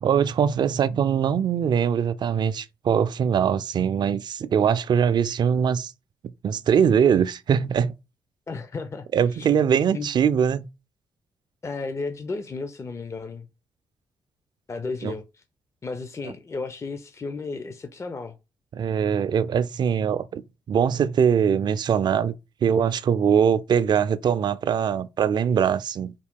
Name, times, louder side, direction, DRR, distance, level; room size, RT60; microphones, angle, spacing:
voice 1, 0.0-5.9 6.4-7.9 9.1-10.7 15.0-15.1 18.7-20.4 20.7-22.3 22.6-26.1, right 7 dB, 55° right, 0.4 m, -22 dB
voice 2, 8.5-9.1 9.3-9.5 9.9-10.1 11.6-13.5 14.7-15.4 15.8-18.3, left 4 dB, 30° left, 0.5 m, -33 dB
3.6 x 2.2 x 3.6 m
supercardioid pair, 50°, 9 cm